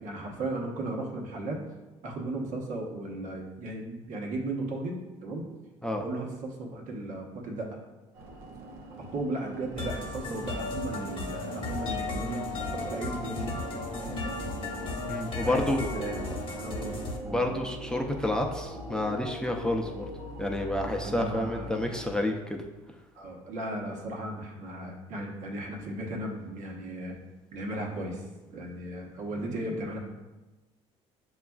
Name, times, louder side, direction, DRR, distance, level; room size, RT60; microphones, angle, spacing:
voice 1, 0.0-1.6 2.0-5.4 6.0-7.7 9.1-13.5 15.4-15.6 16.0-16.1 16.6-17.0 17.2-17.4 21.0-21.7 23.1-27.1 27.5-30.0, right 2 dB, 70° right, -1 dB, 1.0 m, -36 dB
sound 1, 8.1-22.1, right 1 dB, 90° right, 0.6 m, -41 dB
sound 2, 9.8-17.2, left 3 dB, 40° left, 0.9 m, -35 dB
voice 2, 15.1-15.9 17.3-20.1 20.4-22.6, left 1 dB, 5° left, 1 dB, 0.5 m, -29 dB
6.7 x 2.4 x 2.3 m, 1.1 s
supercardioid pair, 70°, 14 cm